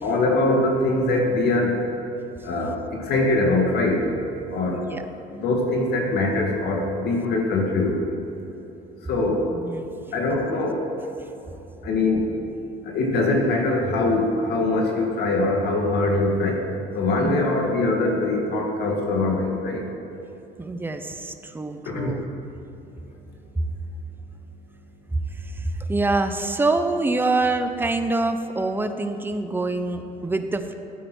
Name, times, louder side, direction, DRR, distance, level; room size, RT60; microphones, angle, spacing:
voice 1, 0.0-1.8 2.4-4.1 4.5-4.8 5.3-8.0 9.0-9.5 10.1-10.9 11.8-12.3 12.8-16.6 16.9-19.9 21.9-22.2, left 2 dB, 70° left, 1 dB, 2.0 m, -22 dB
voice 2, 4.7-5.1 9.5-9.9 10.4-10.5 17.2-17.5 20.6-22.2 23.6-23.7 25.1-30.7, right 2 dB, 10° right, 8 dB, 0.7 m, -25 dB
12.5 x 9.0 x 4.5 m, 3.0 s
cardioid pair, 110°, 17 cm